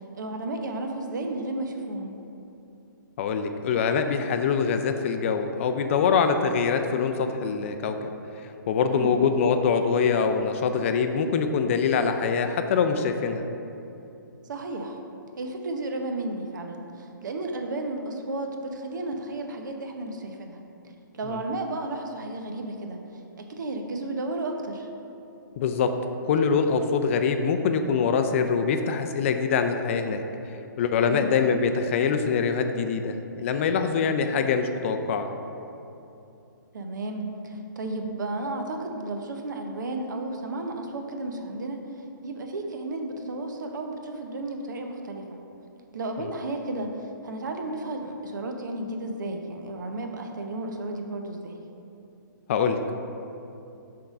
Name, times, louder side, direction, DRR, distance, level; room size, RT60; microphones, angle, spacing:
voice 1, 0.1-2.2 8.9-9.2 14.5-15.0 15.4-20.6 21.1-24.9 31.0-31.3 36.7-45.4 45.9-51.6, right 2 dB, 65° right, 4 dB, 0.8 m, -33 dB
voice 2, 3.2-8.1 8.7-13.5 21.3-21.4 25.6-25.9 26.2-30.2 30.8-35.3 46.2-46.3 52.5-53.0, left 6 dB, 40° left, 7 dB, 0.4 m, -24 dB
5.9 x 3.7 x 5.2 m, 2.8 s
figure-of-eight pair, 135°, 11 cm